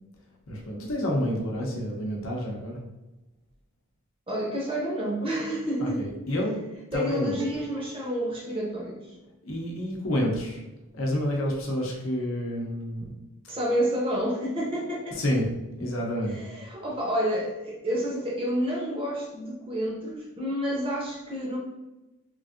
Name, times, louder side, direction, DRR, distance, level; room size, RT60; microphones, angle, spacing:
voice 1, 0.5-2.8 5.8-6.6 6.9-7.4 9.4-10.6 10.9-13.1 15.1-15.5 15.8-16.4, equal, 65° left, -2 dB, 0.7 m, -29 dB
voice 2, 4.3-6.0 6.9-9.1 13.5-15.2 16.3-21.6, equal, 25° right, -4 dB, 0.7 m, -29 dB
sound 1, 7.4-9.4, right 3 dB, 90° right, 0.4 m, -47 dB
3.1 x 2.6 x 2.5 m, 1.0 s
head